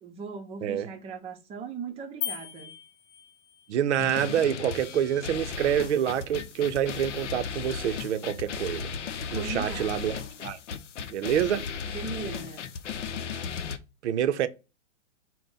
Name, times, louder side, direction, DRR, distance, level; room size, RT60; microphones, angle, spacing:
voice 1, 0.0-2.7 9.3-10.1 11.9-12.7, right 5 dB, 15° right, 0.6 m, -39 dB
sound 1, 2.2-3.7, left 12 dB, 30° left, 0.5 m, -37 dB
voice 2, 3.7-8.9 9.3-10.1 10.4-10.6 11.1-11.7 14.0-14.5, right 10 dB, 70° right, 0.6 m, -27 dB
sound 2, 4.0-13.8, left 6 dB, 80° left, 0.6 m, -36 dB
4.2 x 2.1 x 3.7 m
hypercardioid pair, 120°, 36 cm